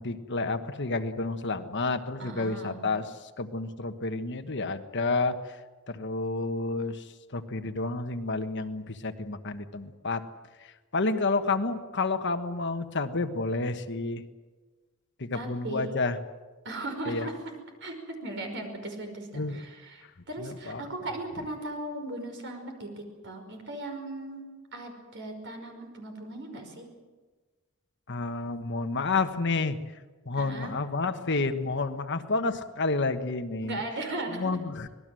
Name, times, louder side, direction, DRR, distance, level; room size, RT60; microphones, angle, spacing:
voice 1, 0.0-3.0 3.4-5.3 5.9-7.0 7.3-10.2 10.9-14.2 15.2-16.2 17.1-17.3 19.3-19.6 20.4-20.8 28.1-29.8 30.3-33.8 34.3-34.9, left 3 dB, 55° left, 8 dB, 1.4 m, -30 dB
voice 2, 2.2-2.8 15.3-15.9 16.6-17.4 17.8-18.0 18.2-22.9 23.2-24.4 24.7-26.9 30.3-30.7 33.6-34.6, right 2 dB, 60° right, 4 dB, 5.3 m, -37 dB
25.5 x 19.5 x 7.8 m, 1.3 s
head